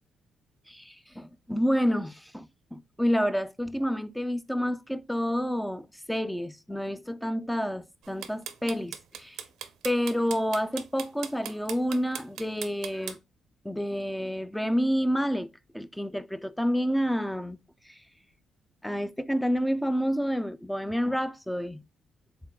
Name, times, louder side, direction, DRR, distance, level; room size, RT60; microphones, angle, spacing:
voice 1, 0.7-9.4 9.8-13.2 13.6-15.5 15.7-17.6 17.9-18.0 18.8-21.8, equal, 5° left, 0.3 m, -29 dB
sound 1, 8.0-13.1, right 9 dB, 80° right, 0.5 m, -38 dB
3.6 x 3.5 x 2.2 m
cardioid pair, 90°, 0 cm